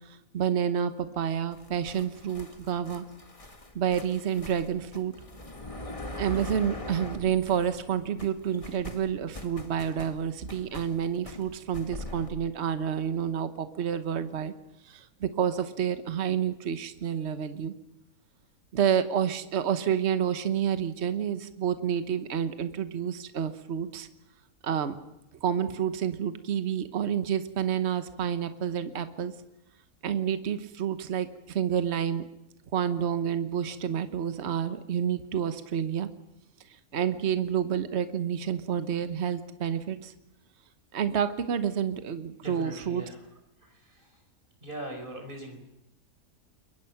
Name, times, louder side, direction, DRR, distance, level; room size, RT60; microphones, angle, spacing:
voice 1, 0.0-3.0 3.7-5.1 6.2-14.5 14.8-17.7 18.7-24.1 24.6-25.0 25.4-29.3 30.0-32.2 32.7-36.1 36.9-40.1 40.9-43.0, right 8 dB, 50° right, 10 dB, 1.3 m, -29 dB
sound 1, 1.5-7.9 8.2-12.3, left 1 dB, 25° left, 2.0 m, -42 dB
voice 2, 42.4-43.2 43.6-44.2 44.6-45.7, right 1 dB, 35° right, 4 dB, 4.8 m, -41 dB
28.0 x 22.5 x 5.9 m, 0.89 s
omnidirectional pair, 1.5 m